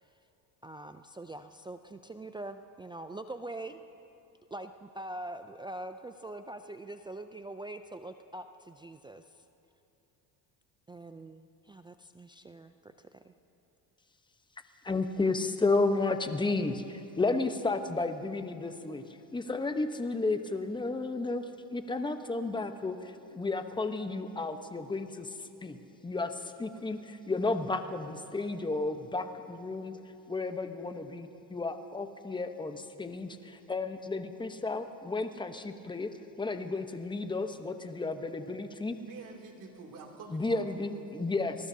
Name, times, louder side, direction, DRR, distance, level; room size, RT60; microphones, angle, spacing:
voice 1, 0.6-3.8 4.5-9.2 10.9-13.3, right 2 dB, 10° right, 7 dB, 0.3 m, -43 dB
voice 2, 14.8-19.0 19.3-25.8 26.0-29.9 30.3-39.0 40.3-41.6, left 3 dB, 10° left, 8 dB, 0.9 m, -32 dB
voice 3, 39.1-41.2, right 4 dB, 50° right, 1 dB, 2.7 m, -48 dB
27.0 x 19.0 x 2.8 m, 2.9 s
supercardioid pair, 95°, 43 cm